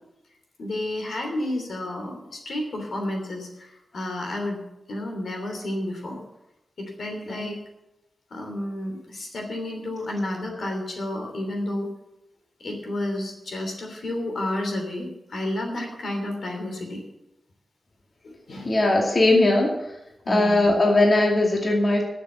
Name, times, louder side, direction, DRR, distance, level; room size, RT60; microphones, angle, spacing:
voice 1, 0.6-4.6 4.9-6.2 6.8-7.6 8.3-11.9 12.6-17.0 18.2-18.8 20.2-20.7, left 1 dB, 75° left, 2 dB, 3.0 m, -31 dB
voice 2, 18.6-19.7 20.3-22.0, left 2 dB, 40° left, -1 dB, 2.3 m, -19 dB
12.0 x 6.9 x 8.0 m, 0.91 s
wide cardioid pair, 110°, 0 cm